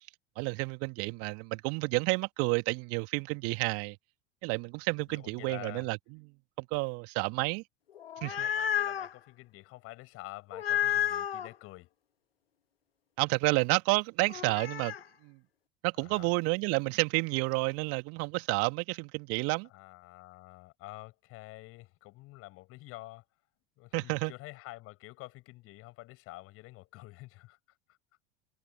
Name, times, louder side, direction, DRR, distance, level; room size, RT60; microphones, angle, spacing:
voice 1, 0.4-4.0 4.4-6.0 6.6-7.6 8.2-8.5 13.2-14.9 15.2-15.4 15.8-19.7 23.9-24.3, right 29 dB, 50° right, 2.3 m, -30 dB
voice 2, 5.1-5.9 7.4-7.5 8.3-11.9 16.0-16.3 19.6-23.2 23.8-27.6, left 20 dB, 50° left, 7.7 m, -48 dB
sound 1, 8.0-9.1 10.5-11.5 14.3-15.0, left 10 dB, 80° left, 1.6 m, -31 dB
figure-of-eight pair, 80°, 30 cm